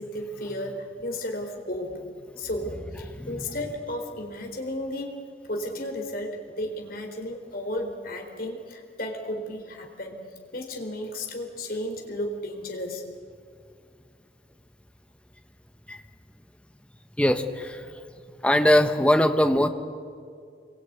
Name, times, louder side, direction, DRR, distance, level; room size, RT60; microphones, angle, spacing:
voice 1, 0.0-2.1 2.4-13.0, left 1 dB, 55° left, 3 dB, 4.2 m, -34 dB
voice 2, 3.2-3.5 15.9-16.0 17.2-17.9 18.4-19.7, left 1 dB, 5° left, 8 dB, 1.3 m, -21 dB
26.0 x 22.5 x 9.4 m, 2.3 s
head